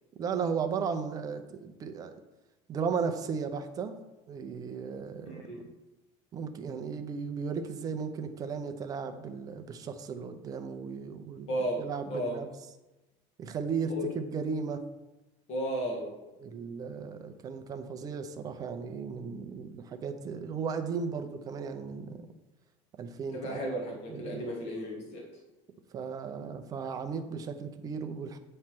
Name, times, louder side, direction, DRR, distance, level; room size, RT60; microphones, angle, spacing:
voice 1, 0.2-2.1 2.7-4.0 4.3-5.4 6.3-12.5 13.4-14.8 16.4-22.3 23.0-23.7 24.1-24.5 25.9-28.4, right 5 dB, 25° right, 7 dB, 0.5 m, -35 dB
voice 2, 5.2-5.6 11.5-12.4 13.9-14.0 15.5-16.1 23.3-25.3, equal, 45° left, -1 dB, 1.5 m, -34 dB
8.4 x 3.2 x 5.9 m, 1.0 s
cardioid pair, 170°, 15 cm